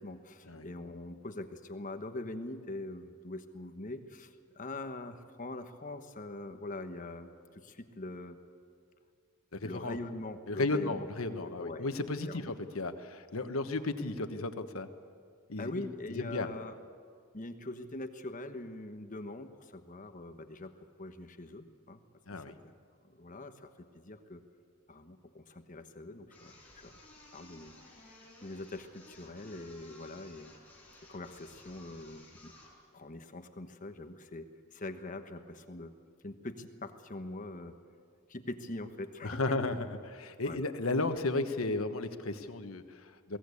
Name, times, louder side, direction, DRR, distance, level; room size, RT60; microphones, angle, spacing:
voice 1, 0.0-8.4 9.6-11.1 11.5-11.9 12.2-12.5 15.6-16.8 17.3-20.7 21.0-22.0 22.5-22.7 23.0-24.4 24.9-27.0 27.3-27.7 28.1-30.5 31.1-32.5 32.9-35.9 36.2-37.7 38.3-39.6 40.4-40.6, left 2 dB, 40° left, 7 dB, 1.2 m, -43 dB
voice 2, 9.5-10.0 10.5-14.9 15.5-15.8 16.1-16.5 22.3-22.5 39.2-43.4, left 2 dB, 85° left, 8 dB, 1.3 m, -34 dB
sound 1, 26.3-32.8, left 2 dB, 5° left, 6.0 m, -56 dB
22.0 x 17.0 x 8.5 m, 2.1 s
head